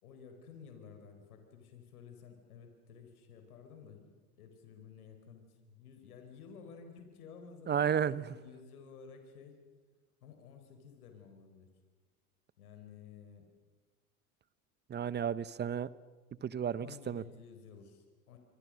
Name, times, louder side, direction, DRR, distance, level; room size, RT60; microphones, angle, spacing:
voice 1, 0.0-7.9 8.3-9.6 10.2-11.7 12.6-13.5 16.8-18.4, left 6 dB, 75° left, 5 dB, 4.7 m, -53 dB
voice 2, 7.7-8.2 14.9-15.9 16.4-17.2, right 8 dB, 25° right, 18 dB, 1.0 m, -32 dB
28.5 x 25.0 x 6.4 m, 1.4 s
hypercardioid pair, 90°, 44 cm